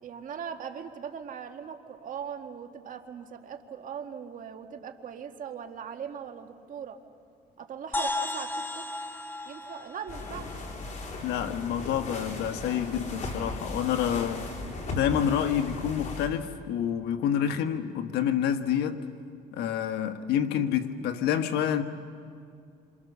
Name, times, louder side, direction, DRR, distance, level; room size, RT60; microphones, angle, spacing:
voice 1, 0.0-7.0 7.6-8.9 9.5-10.7, right 7 dB, 50° right, 1.9 m, -40 dB
sound 1, 7.9-11.7, left 2 dB, 10° left, 1.7 m, -35 dB
sound 2, 10.1-16.3, left 2 dB, 45° left, 3.6 m, -37 dB
voice 2, 11.2-14.5 14.9-19.0 19.5-21.8, left 9 dB, 85° left, 1.5 m, -28 dB
27.0 x 27.0 x 6.9 m
cardioid pair, 110°, 17 cm